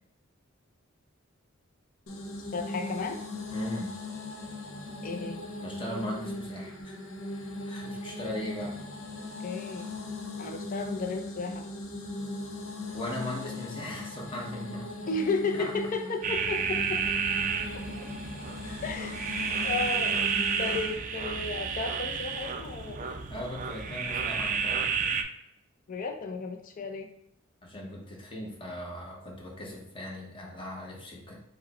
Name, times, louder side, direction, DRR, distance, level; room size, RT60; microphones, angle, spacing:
sound 1, 2.1-21.0, left 2 dB, 90° left, 0.8 m, -39 dB
voice 1, 2.5-3.2 5.0-5.4 9.4-9.9 10.4-11.6 15.1-17.0 18.8-19.3 19.6-20.2 20.6-23.1 25.9-27.1, left 4 dB, 40° left, 4 dB, 0.4 m, -33 dB
voice 2, 3.5-3.9 5.6-7.0 7.7-8.7 12.9-14.9 15.5-15.7 18.6-18.8 23.3-24.9 27.6-31.4, left 1 dB, 25° left, -1 dB, 0.8 m, -38 dB
sound 2, 16.2-25.2, right 6 dB, 40° right, 0.3 m, -31 dB
4.8 x 2.1 x 4.0 m, 0.76 s
head